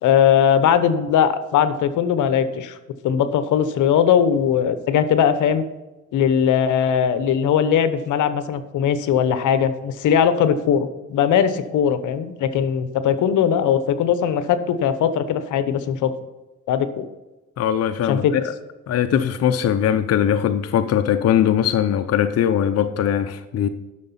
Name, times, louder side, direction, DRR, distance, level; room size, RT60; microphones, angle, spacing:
voice 1, 0.0-2.8 3.0-5.6 6.1-16.1 16.7-17.0 18.1-18.3, left 8 dB, 80° left, 12 dB, 0.9 m, -19 dB
voice 2, 17.6-18.5 18.9-23.7, left 9 dB, 55° left, 9 dB, 0.7 m, -20 dB
11.0 x 6.5 x 5.7 m, 1.1 s
cardioid pair, 90°, 30 cm